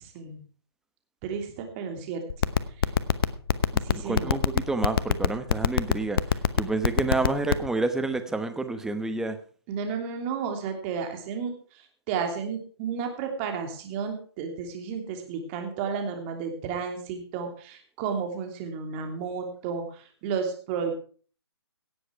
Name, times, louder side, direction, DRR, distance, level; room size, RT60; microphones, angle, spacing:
voice 1, 1.2-2.2 3.8-4.3 7.0-7.1 9.7-11.5 12.1-20.9, right 6 dB, 30° right, 4 dB, 3.0 m, -32 dB
sound 1, 2.3-7.7, left 8 dB, 60° left, 1.0 m, -20 dB
voice 2, 3.7-9.4, right 2 dB, 5° right, 8 dB, 1.0 m, -29 dB
17.0 x 7.8 x 4.7 m, 0.43 s
hypercardioid pair, 145°, 14 cm